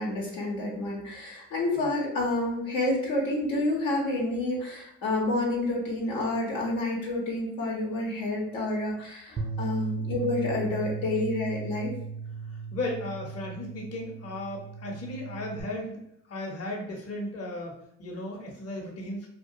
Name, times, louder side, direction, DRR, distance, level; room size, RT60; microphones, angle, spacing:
voice 1, 0.0-11.9, left 2 dB, 80° left, -3 dB, 0.8 m, -29 dB
Bass guitar, 9.4-15.6, right 5 dB, 35° right, 0.4 m, -37 dB
voice 2, 12.5-16.0 16.3-19.3, left 1 dB, 45° left, 0 dB, 0.8 m, -36 dB
2.2 x 2.2 x 2.6 m, 0.77 s
supercardioid pair, 55°, 34 cm